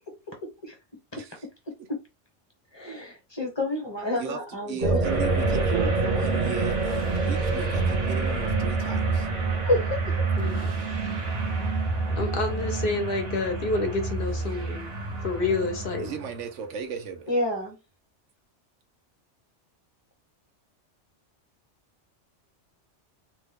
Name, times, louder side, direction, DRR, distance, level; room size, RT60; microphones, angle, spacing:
voice 1, 0.1-0.8 1.1-1.2 1.9-2.0 2.7-5.0 5.7-5.9 9.6-10.2 17.3-17.8, left 1 dB, 25° left, 0.8 m, -29 dB
voice 2, 4.7-9.3 16.0-17.3, right 6 dB, 85° right, 1.0 m, -36 dB
sound 1, 4.8-12.1, right 3 dB, 45° right, 0.7 m, -28 dB
sound 2, 5.0-16.5, right 3 dB, 60° right, 1.0 m, -29 dB
voice 3, 10.4-10.8 12.2-14.9 15.2-16.1, left 3 dB, 55° left, 0.8 m, -28 dB
2.8 x 2.1 x 3.5 m
omnidirectional pair, 1.2 m